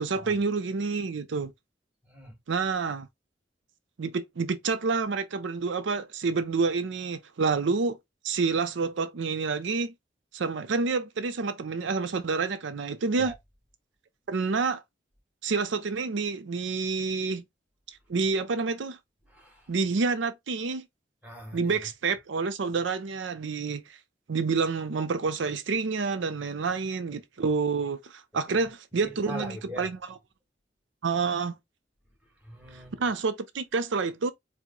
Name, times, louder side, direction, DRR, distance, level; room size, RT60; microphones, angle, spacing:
voice 1, 0.0-1.5 2.5-3.1 4.0-8.0 8.2-9.9 10.3-13.3 14.3-14.8 15.4-17.4 18.1-19.0 19.7-20.8 21.5-24.0 24.3-30.0 31.0-31.6 33.0-34.3, right 4 dB, 85° right, 0.5 m, -28 dB
voice 2, 2.0-2.3 13.2-13.4 19.3-19.7 21.2-21.7 27.1-27.2 28.5-28.6 29.0-29.9 32.4-33.0, right 1 dB, 10° right, 1.4 m, -41 dB
4.6 x 2.1 x 3.8 m
head